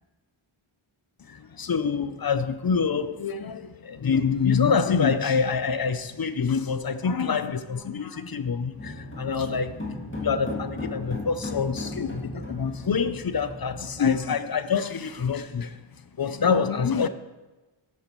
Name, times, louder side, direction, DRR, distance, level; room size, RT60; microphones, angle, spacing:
voice 1, 1.3-9.8 10.2-15.8 16.2-17.1, left 6 dB, 45° left, 0.6 m, -26 dB
sound 1, 8.8-14.3, left 2 dB, 25° left, 2.3 m, -36 dB
13.0 x 8.5 x 3.1 m
wide cardioid pair, 60°, 50 cm